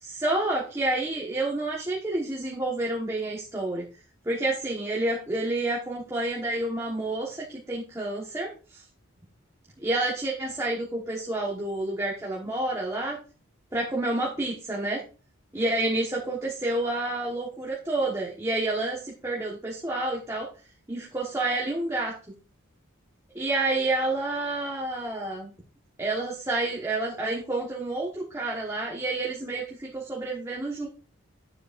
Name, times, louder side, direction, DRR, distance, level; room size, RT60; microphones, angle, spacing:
voice 1, 0.0-3.8 4.2-8.8 9.8-13.2 13.7-15.0 15.5-20.5 20.9-22.2 23.3-25.5 26.0-30.9, right 2 dB, 15° right, -4 dB, 1.3 m, -29 dB
9.7 x 7.7 x 2.6 m, 0.36 s
head